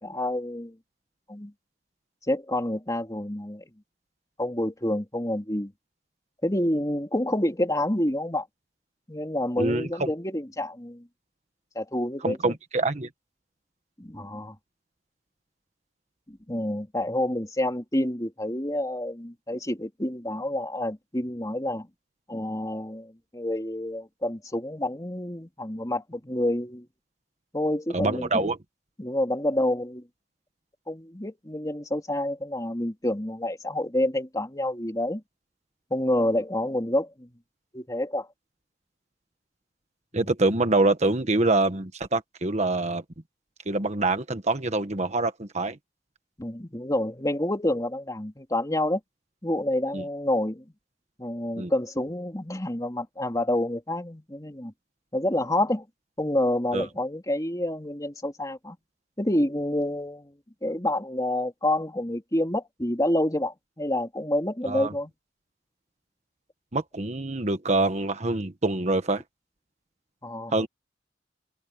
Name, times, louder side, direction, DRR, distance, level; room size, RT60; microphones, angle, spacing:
voice 1, 0.0-0.7 1.3-1.5 2.3-3.6 4.4-5.7 6.4-8.5 9.1-11.1 11.7-12.5 14.0-14.6 16.3-21.9 22.3-26.9 27.5-28.5 29.0-30.0 30.9-35.2 35.9-37.3 37.7-38.3 40.1-40.2 46.4-49.0 49.4-50.6 51.2-54.7 55.1-55.8 56.2-58.8 59.2-60.3 60.6-65.1 70.2-70.7, left 1 dB, 20° left, 2.9 m, -28 dB
voice 2, 9.6-10.1 12.2-13.1 27.9-28.6 40.1-43.0 43.7-45.8 49.9-50.0 51.6-51.7 56.7-56.8 64.6-64.9 66.7-69.2 70.5-70.7, right 2 dB, 40° right, 1.3 m, -25 dB
head